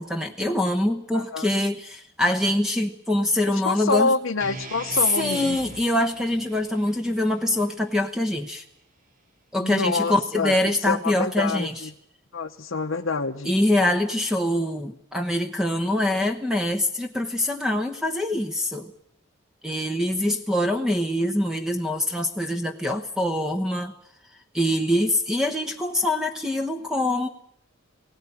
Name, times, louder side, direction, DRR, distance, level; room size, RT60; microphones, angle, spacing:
voice 1, 0.0-4.1 5.2-8.6 9.5-11.9 13.4-18.9 19.6-23.9 24.5-27.3, left 1 dB, 5° right, 6 dB, 1.0 m, -24 dB
voice 2, 1.1-1.5 3.5-5.6 9.6-10.6 10.9-11.9 12.3-13.5, left 3 dB, 70° left, 1 dB, 0.9 m, -26 dB
sound 1, 4.4-8.6, right 2 dB, 40° right, 2.2 m, -42 dB
20.0 x 17.5 x 9.9 m, 0.72 s
head